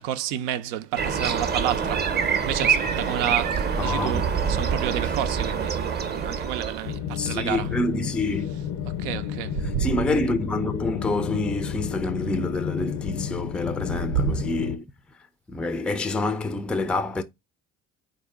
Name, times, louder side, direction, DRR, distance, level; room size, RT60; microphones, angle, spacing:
voice 1, 0.0-7.7 9.0-10.1 14.1-14.4, right 10 dB, 80° right, 0.6 m, -30 dB
sound 1, 1.0-7.0, right 6 dB, 30° right, 0.7 m, -26 dB
voice 2, 3.8-4.2 7.2-8.6 9.8-14.9 15.5-17.2, left 2 dB, 5° left, 0.4 m, -27 dB
sound 2, 6.8-14.8, left 9 dB, 70° left, 0.5 m, -32 dB
3.9 x 2.7 x 3.4 m
hypercardioid pair, 65°, 35 cm